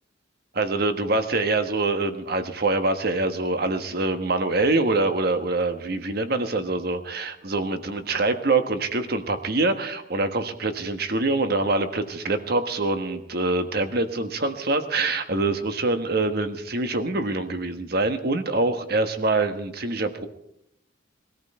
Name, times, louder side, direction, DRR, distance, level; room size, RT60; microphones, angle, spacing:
voice 1, 0.5-20.3, right 2 dB, 50° right, 8 dB, 1.4 m, -25 dB
21.5 x 13.5 x 4.4 m, 0.78 s
head